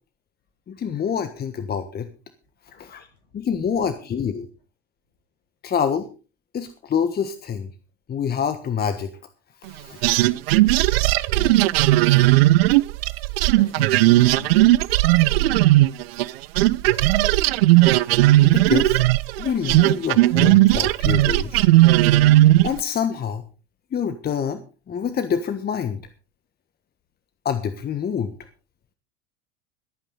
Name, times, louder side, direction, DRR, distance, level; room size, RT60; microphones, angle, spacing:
voice 1, 0.7-2.1 2.7-3.1 3.3-4.5 5.6-6.1 6.5-7.7 8.1-9.1 9.6-10.0 18.4-19.0 19.4-21.7 22.6-23.4 23.9-24.6 24.9-26.0 27.4-28.3, left 7 dB, 30° left, 10 dB, 1.4 m, -26 dB
voice 2, 2.6-3.4 11.3-11.7 13.5-14.7 15.3-15.7, left 5 dB, 65° left, 5 dB, 6.3 m, -42 dB
sound 1, 10.0-16.3 16.6-22.8, right 17 dB, 60° right, 0.6 m, -16 dB
23.0 x 9.0 x 4.0 m, 0.34 s
figure-of-eight pair, 75°, 34 cm